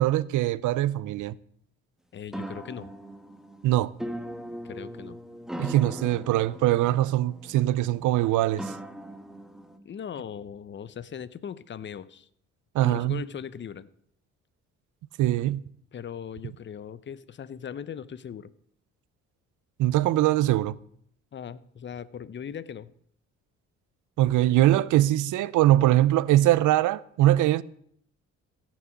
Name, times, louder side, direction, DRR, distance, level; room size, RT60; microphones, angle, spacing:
voice 1, 0.0-1.4 3.6-3.9 5.6-8.7 12.7-13.2 15.2-15.6 19.8-20.7 24.2-27.6, right 14 dB, 80° right, 0.6 m, -22 dB
voice 2, 2.1-2.9 4.6-5.2 9.8-12.3 12.8-13.9 15.9-18.5 21.3-22.9, left 8 dB, 40° left, 0.7 m, -39 dB
sound 1, 2.3-9.8, equal, ahead, 1.4 m, -40 dB
15.0 x 6.2 x 8.3 m
cardioid pair, 90°, 30 cm